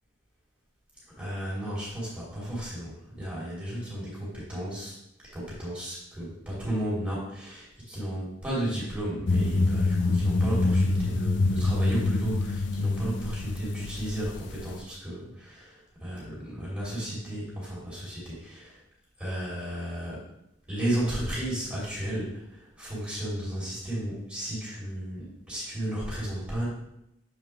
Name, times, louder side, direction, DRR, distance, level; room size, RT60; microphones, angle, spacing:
voice 1, 1.2-4.9 5.3-18.8 19.2-20.2 20.7-26.6, right 1 dB, 5° right, -8 dB, 2.7 m, -33 dB
sound 1, 9.3-14.8, left 2 dB, 70° left, 0.5 m, -26 dB
7.4 x 4.7 x 3.5 m, 0.80 s
head